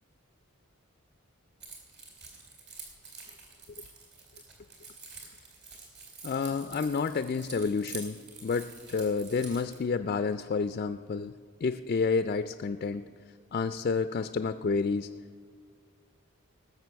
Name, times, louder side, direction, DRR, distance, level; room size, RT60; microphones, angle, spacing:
Keys jangling, 1.6-9.8, right 4 dB, 50° right, 3.3 m, -47 dB
voice 1, 6.2-11.3 11.6-13.0 13.5-15.1, left 4 dB, 40° left, 10 dB, 0.3 m, -30 dB
19.0 x 6.9 x 7.0 m, 2.1 s
head